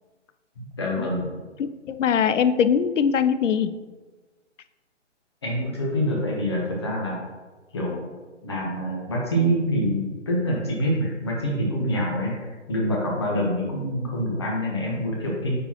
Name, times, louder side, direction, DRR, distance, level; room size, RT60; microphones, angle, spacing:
voice 1, 0.6-1.3 5.4-7.2 7.7-8.1 8.4-15.6, equal, 20° left, -3 dB, 1.0 m, -26 dB
voice 2, 1.6-3.8, left 7 dB, 80° left, 13 dB, 0.5 m, -22 dB
8.9 x 4.2 x 2.9 m, 1.3 s
hypercardioid pair, 175°, 37 cm